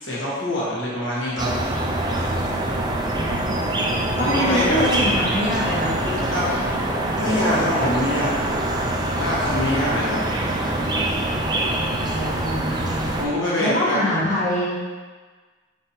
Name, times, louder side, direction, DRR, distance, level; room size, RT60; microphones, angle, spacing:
voice 1, 0.0-1.5 4.2-4.8 6.3-6.5 7.2-8.3 9.2-10.2 13.2-14.0, left 1 dB, 80° left, -7 dB, 1.3 m, -24 dB
sound 1, 1.4-13.3, right 1 dB, 20° right, 0.4 m, -24 dB
voice 2, 3.1-3.7 4.2-7.9 12.0-13.3 13.6-14.7, left 1 dB, 40° left, -8 dB, 1.0 m, -26 dB
5.5 x 3.3 x 2.7 m, 1.4 s
head